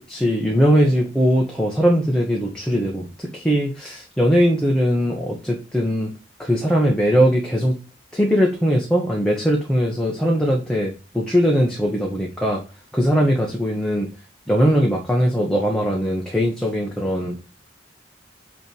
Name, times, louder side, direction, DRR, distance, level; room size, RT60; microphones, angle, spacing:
voice 1, 0.1-6.1 6.4-7.8 8.1-12.6 12.9-14.1 14.5-17.4, equal, 5° left, -2 dB, 1.2 m, -20 dB
8.7 x 3.4 x 4.6 m, 0.33 s
head